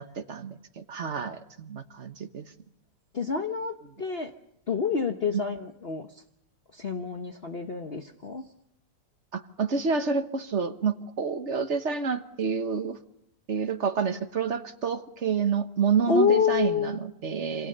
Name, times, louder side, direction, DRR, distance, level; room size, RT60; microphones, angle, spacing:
voice 1, 0.0-2.5 9.3-13.0 13.5-17.7, right 5 dB, 45° right, 9 dB, 1.5 m, -29 dB
voice 2, 3.1-4.3 4.7-6.1 6.7-8.4 16.1-17.0, left 6 dB, 40° left, 5 dB, 1.2 m, -27 dB
27.5 x 27.0 x 6.7 m, 0.78 s
omnidirectional pair, 1.9 m